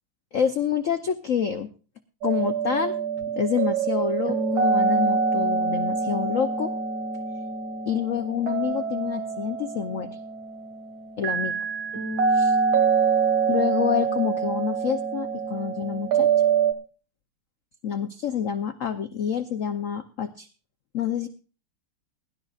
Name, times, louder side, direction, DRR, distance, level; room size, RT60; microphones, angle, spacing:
voice 1, 0.3-1.7 2.2-2.9 3.3-6.7 7.9-10.1 11.2-11.6 12.3-12.6 13.5-16.3 17.8-20.5 20.9-21.3, left 8 dB, 65° left, 7 dB, 0.7 m, -27 dB
sound 1, 2.2-16.7, right 5 dB, 65° right, 2.5 m, -25 dB
22.5 x 11.5 x 2.4 m, 0.36 s
omnidirectional pair, 2.3 m